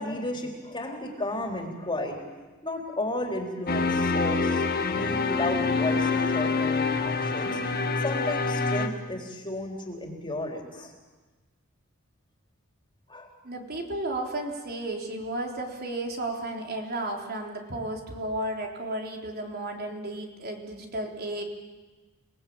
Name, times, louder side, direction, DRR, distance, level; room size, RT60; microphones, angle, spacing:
voice 1, 0.0-2.2 2.6-7.6 8.0-10.9 13.1-13.3, left 1 dB, 20° left, 2 dB, 3.8 m, -33 dB
sound 1, 3.7-8.9, left 4 dB, 45° left, 1.8 m, -26 dB
voice 2, 13.4-21.4, right 1 dB, 45° right, 1 dB, 3.8 m, -33 dB
30.0 x 20.0 x 8.8 m, 1.2 s
head